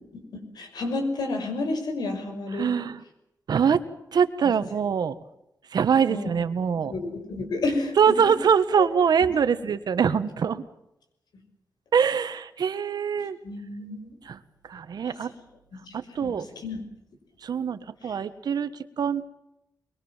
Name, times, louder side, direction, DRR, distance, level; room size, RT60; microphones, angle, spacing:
voice 1, 0.1-2.7 4.4-4.5 6.1-6.4 6.9-8.2 13.4-14.1 15.0-15.3 15.9-16.8 18.0-18.2, left 2 dB, 90° left, 6 dB, 5.8 m, -31 dB
voice 2, 2.5-3.0 3.5-3.8 4.1-5.1 5.7-6.9 8.0-10.6 11.9-13.4 14.2-14.4 14.7-15.3 15.9-16.4 17.4-18.7 19.0-19.2, right 7 dB, 80° right, 11 dB, 1.6 m, -23 dB
24.0 x 22.5 x 7.4 m, 0.85 s
wide cardioid pair, 95°, 7 cm